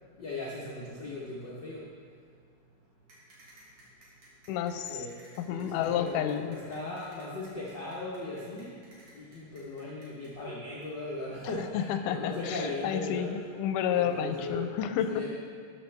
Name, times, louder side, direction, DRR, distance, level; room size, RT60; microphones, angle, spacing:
voice 1, 0.2-1.9 4.9-5.1 5.5-8.8 9.1-13.3 13.9-14.7 15.1-15.3, left 2 dB, 65° left, -6 dB, 1.1 m, -38 dB
sound 1, 3.1-10.3, right 1 dB, 60° right, 3.0 m, -57 dB
voice 2, 4.5-5.1 5.4-6.6 11.7-15.3, left 9 dB, 80° left, 9 dB, 2.1 m, -30 dB
12.5 x 8.5 x 3.4 m, 2.2 s
omnidirectional pair, 3.7 m